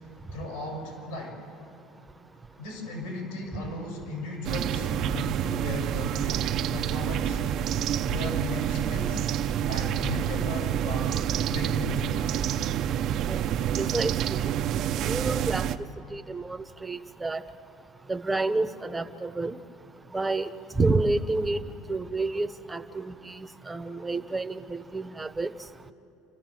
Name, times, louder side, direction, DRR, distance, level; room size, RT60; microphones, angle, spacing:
voice 1, 0.3-1.4 2.6-7.4 8.0-9.3 9.6-11.2 11.5-12.5, left 2 dB, 80° left, 0 dB, 6.9 m, -36 dB
sound 1, 4.4-15.8, right 10 dB, 50° right, 0.7 m, -28 dB
voice 2, 13.8-14.5 15.1-15.7 16.1-17.4 18.1-19.5 20.1-20.5 20.8-21.6 21.9-25.5, right 3 dB, 10° right, 9 dB, 0.9 m, -29 dB
29.5 x 14.0 x 7.7 m, 2.7 s
cardioid pair, 140°, 0 cm